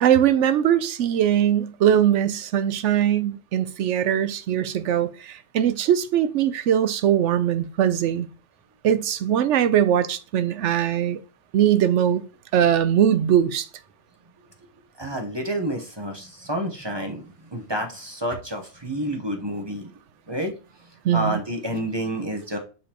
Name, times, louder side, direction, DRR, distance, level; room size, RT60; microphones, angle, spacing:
voice 1, 0.0-8.3 8.8-11.2 11.5-12.2 12.5-13.7 21.0-21.4, right 10 dB, 85° right, 0.9 m, -21 dB
voice 2, 15.0-19.9 20.3-20.5 21.1-22.6, right 1 dB, 25° right, 1.0 m, -29 dB
6.8 x 5.1 x 2.9 m
omnidirectional pair, 1.2 m